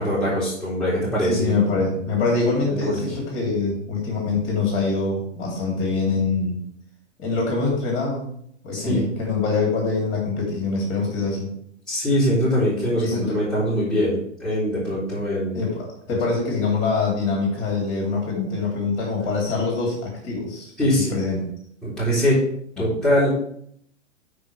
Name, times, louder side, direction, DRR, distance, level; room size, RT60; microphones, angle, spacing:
voice 1, 0.0-1.6 2.7-3.0 8.7-9.1 11.9-15.6 20.8-21.1 21.8-22.4 22.8-23.3, equal, ahead, -10 dB, 3.7 m, -22 dB
voice 2, 1.2-6.6 7.2-8.3 8.6-11.5 13.0-13.4 15.5-20.7 21.1-21.4 22.8-22.9, left 4 dB, 30° left, -2 dB, 3.3 m, -24 dB
11.0 x 4.9 x 3.4 m, 0.67 s
figure-of-eight pair, 110°, 38 cm